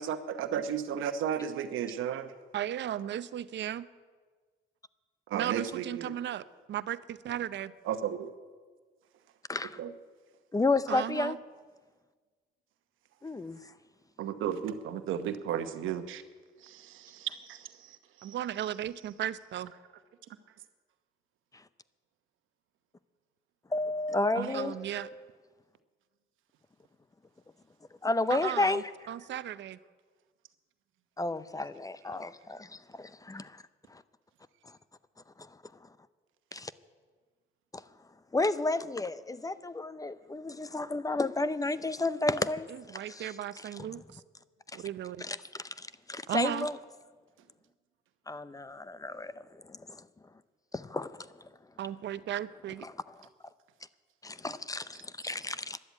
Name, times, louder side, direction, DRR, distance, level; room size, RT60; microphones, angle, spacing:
voice 1, 0.0-2.3 5.3-6.1 7.8-8.3 9.8-9.9 14.2-16.2 16.6-18.3 24.3-24.5, right 9 dB, 85° right, 1.0 m, -34 dB
voice 2, 2.5-3.9 5.3-6.4 6.7-7.7 10.9-11.4 18.2-19.7 24.5-25.1 28.3-29.8 42.9-44.2 44.7-45.3 46.3-46.7 51.8-52.9, right 11 dB, 65° right, 0.6 m, -35 dB
voice 3, 10.5-11.4 13.2-13.6 23.7-25.3 28.0-28.8 31.2-33.6 33.9-34.0 36.5-36.7 38.3-43.3 45.2-46.8 48.3-49.3 49.6-50.0 50.7-51.2 52.8-52.9 54.2-55.8, left 2 dB, 15° left, 0.5 m, -32 dB
13.0 x 11.0 x 8.3 m
cardioid pair, 90°, 20 cm